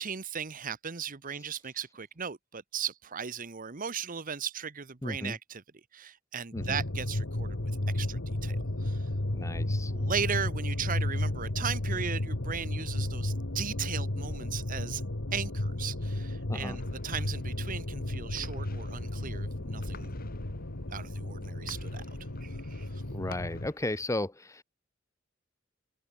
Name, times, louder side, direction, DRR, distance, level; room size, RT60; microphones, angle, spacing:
voice 1, 0.0-5.6 5.9-9.1 9.9-15.0 15.3-20.1 20.9-22.1 22.4-23.0, right 7 dB, 45° right, 1.0 m, -37 dB
voice 2, 5.0-5.4 6.5-6.8 9.3-9.9 16.5-16.8 23.1-24.6, left 1 dB, 15° left, 0.9 m, -34 dB
sound 1, 6.5-23.7, left 1 dB, 75° left, 1.9 m, -33 dB
sound 2, 16.7-24.1, left 2 dB, 50° left, 3.8 m, -49 dB
head